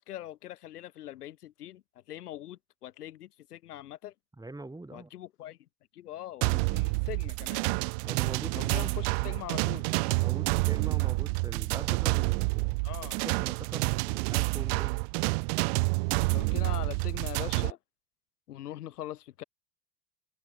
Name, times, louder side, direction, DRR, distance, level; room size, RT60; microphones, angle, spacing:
voice 1, 0.0-1.8 2.1-4.1 4.9-5.6 5.9-7.6 8.5-9.9 12.8-13.2 16.3-17.8 18.5-19.4, left 13 dB, 70° left, 6.8 m, -42 dB
voice 2, 4.4-5.1 8.0-8.9 10.2-15.0, right 2 dB, 10° right, 6.0 m, -43 dB
sound 1, 6.4-17.7, right 33 dB, 45° right, 0.4 m, -28 dB
hypercardioid pair, 85°, 47 cm